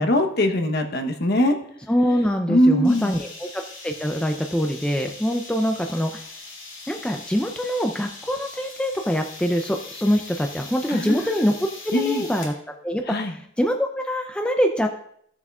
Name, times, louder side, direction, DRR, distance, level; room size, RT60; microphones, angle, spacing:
voice 1, 0.0-1.6 2.5-3.1 10.9-11.5 11.9-12.2 13.1-13.3, left 1 dB, 50° left, 5 dB, 0.9 m, -21 dB
voice 2, 1.9-6.2 6.9-11.5 11.8-12.5 12.8-14.9, equal, 5° left, 4 dB, 0.4 m, -24 dB
sound 1, 2.8-12.6, left 3 dB, 65° left, 2.3 m, -41 dB
16.0 x 7.1 x 2.4 m, 0.67 s
head